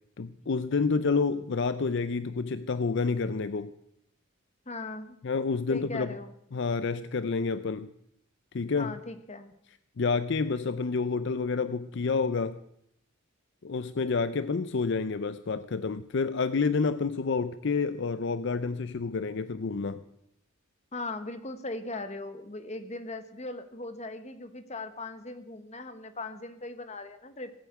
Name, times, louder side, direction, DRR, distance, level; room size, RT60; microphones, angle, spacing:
voice 1, 0.2-3.7 5.2-6.2 6.5-7.9 8.5-8.9 10.0-12.6 13.6-20.0, left 4 dB, 55° left, 0.5 m, -29 dB
voice 2, 4.7-5.2 5.7-6.3 8.8-9.5 20.9-27.5, left 2 dB, 30° left, 1.3 m, -39 dB
17.5 x 9.2 x 8.3 m
head